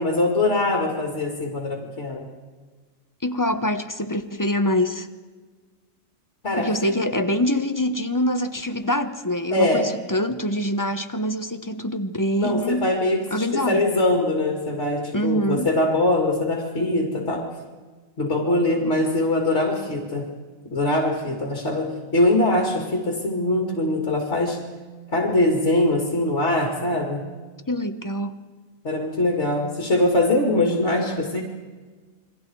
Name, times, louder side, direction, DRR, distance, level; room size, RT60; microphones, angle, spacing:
voice 1, 0.0-2.3 6.4-7.0 9.5-9.9 12.4-17.5 18.2-20.3 20.7-24.6 25.1-27.3 28.8-31.4, left 1 dB, 55° left, 2.8 m, -22 dB
voice 2, 3.2-5.1 6.6-12.9 13.3-13.8 15.1-15.7 27.7-28.4, left 1 dB, 15° left, 1.0 m, -25 dB
29.0 x 23.0 x 4.7 m
omnidirectional pair, 1.4 m